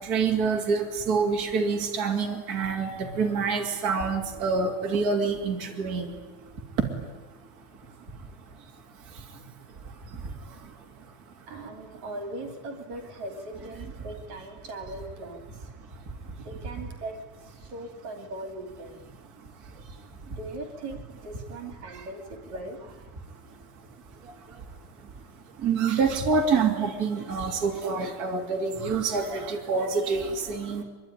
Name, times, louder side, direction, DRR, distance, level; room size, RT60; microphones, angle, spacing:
voice 1, 0.0-6.2 6.7-7.0 9.0-9.5 9.8-10.7 16.2-16.4 19.6-20.4 21.8-22.0 24.2-24.6 25.0-25.1 25.6-30.8, right 5 dB, 25° right, 1 dB, 2.9 m, -27 dB
voice 2, 11.5-15.7 16.4-17.2 17.4-19.0 20.4-22.8, right 2 dB, 50° right, 5 dB, 3.6 m, -39 dB
24.5 x 22.5 x 10.0 m, 1.2 s
omnidirectional pair, 4.2 m